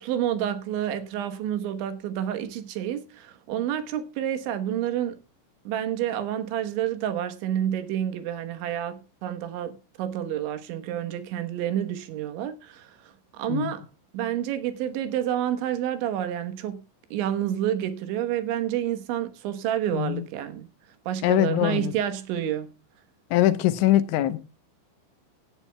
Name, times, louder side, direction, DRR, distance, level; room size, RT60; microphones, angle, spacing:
voice 1, 0.0-5.2 5.7-13.9 14.1-16.8 17.1-20.7 21.1-22.7, right 11 dB, 75° right, 3.4 m, -29 dB
voice 2, 19.9-20.2 21.2-21.9 23.3-24.4, left 14 dB, 80° left, 3.1 m, -22 dB
17.0 x 13.0 x 2.2 m
omnidirectional pair, 5.6 m